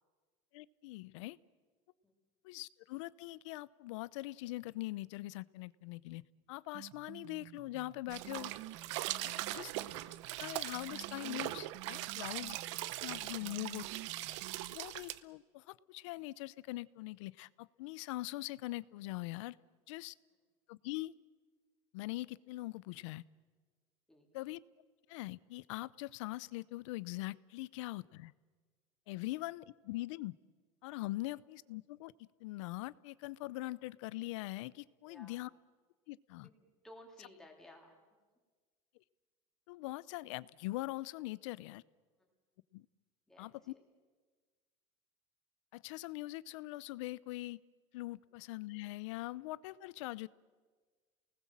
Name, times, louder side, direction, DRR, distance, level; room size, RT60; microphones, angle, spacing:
voice 1, 0.5-1.4 2.4-6.2 6.5-8.5 9.2-9.7 10.4-12.6 13.0-13.8 14.7-19.6 19.9-20.1 20.7-21.1 21.9-23.2 24.3-24.6 25.1-28.3 29.1-30.3 30.8-32.1 32.4-35.5 36.1-36.5 39.7-41.8 42.7-42.8 43.4-43.5 45.7-47.6 47.9-50.3, left 19 dB, 90° left, 21 dB, 0.6 m, -42 dB
sound 1, 6.7-14.7, right 15 dB, 50° right, 1.0 m, -52 dB
sound 2, 8.1-15.2, right 16 dB, 85° right, 0.8 m, -41 dB
voice 2, 9.3-9.7 13.4-13.6 24.1-24.3 29.3-29.4 35.1-35.4 36.4-37.9 43.3-43.8, left 1 dB, 5° left, 0 dB, 2.9 m, -58 dB
29.0 x 19.5 x 7.4 m, 1.5 s
cardioid pair, 175°, 15 cm